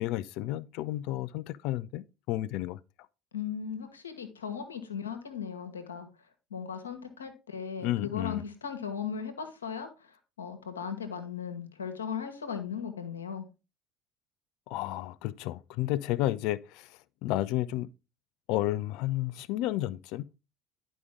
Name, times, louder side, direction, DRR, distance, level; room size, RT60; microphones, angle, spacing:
voice 1, 0.0-2.8 7.8-8.4 14.7-16.9 17.2-17.9 18.5-20.2, left 15 dB, 60° left, 0.4 m, -31 dB
voice 2, 3.3-6.1 6.5-10.1 10.4-13.5, left 7 dB, 80° left, 1.4 m, -37 dB
11.0 x 5.1 x 3.7 m
figure-of-eight pair, 65°, 0 cm